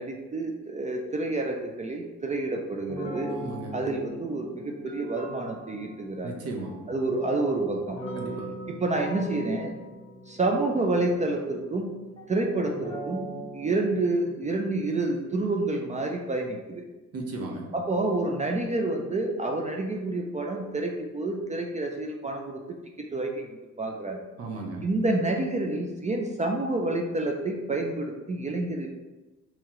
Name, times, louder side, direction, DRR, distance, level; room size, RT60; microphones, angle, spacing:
voice 1, 0.0-3.3 3.7-6.3 6.9-8.0 8.7-9.7 10.3-11.9 12.3-13.2 13.5-16.9 17.7-22.6 23.0-24.2 24.8-28.9, right 2 dB, 25° right, 2 dB, 0.4 m, -28 dB
sound 1, 2.9-14.2, right 1 dB, 20° left, 1.0 m, -41 dB
voice 2, 3.4-3.7 6.2-6.9 8.2-8.5 17.1-17.7 24.4-24.8, right 2 dB, 55° right, 1 dB, 0.8 m, -35 dB
3.1 x 2.8 x 3.6 m, 1.1 s
cardioid pair, 90°, 30 cm